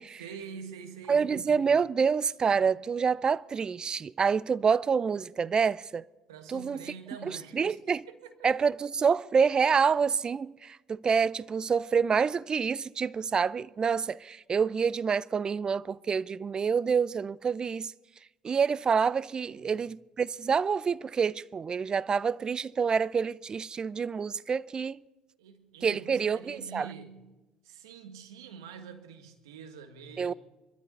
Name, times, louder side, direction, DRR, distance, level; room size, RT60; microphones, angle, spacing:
voice 1, 0.2-1.7 6.3-7.8 8.1-8.5 19.4-19.8 25.4-27.3 27.6-30.3, right 6 dB, 85° right, 1.6 m, -46 dB
voice 2, 1.1-6.0 6.5-6.8 7.2-8.0 8.4-17.9 18.4-25.0 25.8-26.9 30.2-30.3, right 6 dB, 35° right, 0.4 m, -27 dB
23.5 x 13.0 x 4.1 m
hypercardioid pair, 65°, 2 cm